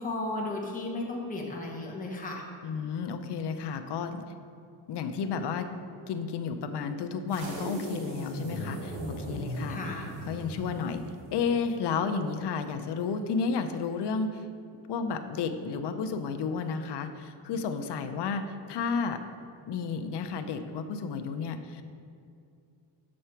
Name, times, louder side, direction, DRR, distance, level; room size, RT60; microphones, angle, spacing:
voice 1, 0.0-2.4 9.7-10.0, left 2 dB, 15° left, -1 dB, 1.1 m, -34 dB
voice 2, 2.6-4.2 4.9-5.7 6.1-9.8 10.3-11.0 11.3-14.4 14.9-19.2 19.7-21.8, left 5 dB, 55° left, 7 dB, 0.7 m, -32 dB
sound 1, 7.3-11.6, right 1 dB, 75° right, 1.5 m, -38 dB
6.7 x 6.4 x 4.5 m, 2.5 s
cardioid pair, 105°, 48 cm